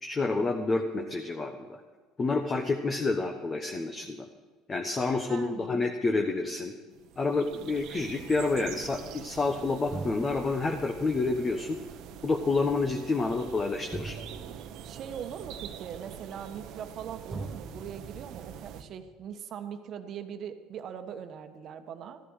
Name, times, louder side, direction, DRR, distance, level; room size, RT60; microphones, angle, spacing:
voice 1, 0.0-1.8 2.2-4.3 4.7-6.7 7.2-11.8 12.2-14.2, left 3 dB, 25° left, 4 dB, 1.2 m, -29 dB
voice 2, 5.3-5.9 14.8-22.2, right 8 dB, 50° right, 7 dB, 1.3 m, -41 dB
sound 1, 6.9-18.8, right 10 dB, 65° right, 1.0 m, -45 dB
sound 2, 9.9-17.0 17.3-19.3, right 3 dB, 15° right, 1.2 m, -45 dB
14.0 x 11.0 x 6.4 m, 1.4 s
cardioid pair, 125°, 0 cm